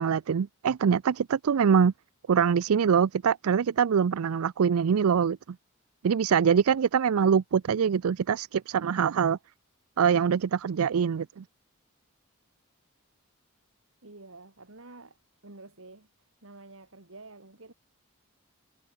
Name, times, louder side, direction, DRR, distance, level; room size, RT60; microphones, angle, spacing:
voice 1, 0.0-1.9 2.3-5.4 6.0-9.4 10.0-11.4, right 7 dB, 85° right, 0.4 m, -24 dB
voice 2, 14.0-15.2 15.4-16.1 16.4-17.7, right 2 dB, 70° right, 2.5 m, -49 dB
head